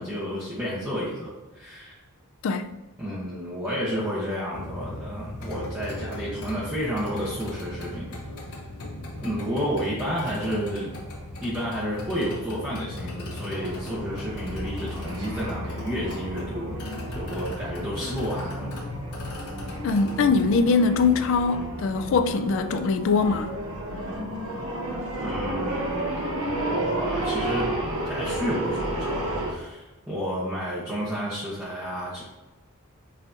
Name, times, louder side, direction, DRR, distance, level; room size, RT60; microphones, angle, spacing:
voice 1, 0.0-1.9 3.0-8.2 9.2-10.9 11.4-16.8 17.1-18.7 25.2-32.2, equal, 10° right, 0.8 m, -31 dB
sound 1, 4.5-20.6, left 1 dB, 75° left, 0.8 m, -37 dB
sound 2, 13.5-29.5, right 1 dB, 70° right, 0.8 m, -32 dB
voice 2, 19.8-23.5, left 4 dB, 60° left, 0.3 m, -22 dB
5.6 x 2.7 x 2.5 m
head